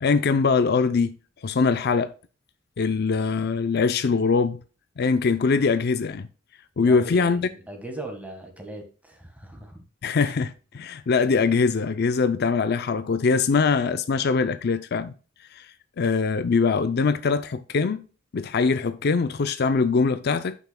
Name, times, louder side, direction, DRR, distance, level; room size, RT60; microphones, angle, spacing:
voice 1, 0.0-1.1 1.4-2.1 2.8-4.6 5.0-6.3 6.8-7.5 10.0-15.1 15.5-15.7 16.0-18.0 18.3-20.6, left 4 dB, 55° left, 0.5 m, -22 dB
voice 2, 6.8-9.8, right 1 dB, 10° right, 1.6 m, -39 dB
9.1 x 5.6 x 2.2 m
head